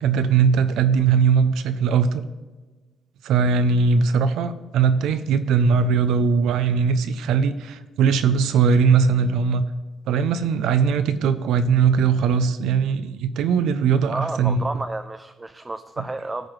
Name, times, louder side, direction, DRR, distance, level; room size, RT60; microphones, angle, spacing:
voice 1, 0.0-2.2 3.2-9.6 10.1-14.7, right 6 dB, 85° right, 11 dB, 0.5 m, -20 dB
voice 2, 14.0-16.5, right 2 dB, 20° right, 8 dB, 0.4 m, -31 dB
14.5 x 4.8 x 3.2 m, 1.3 s
cardioid pair, 90°, 0 cm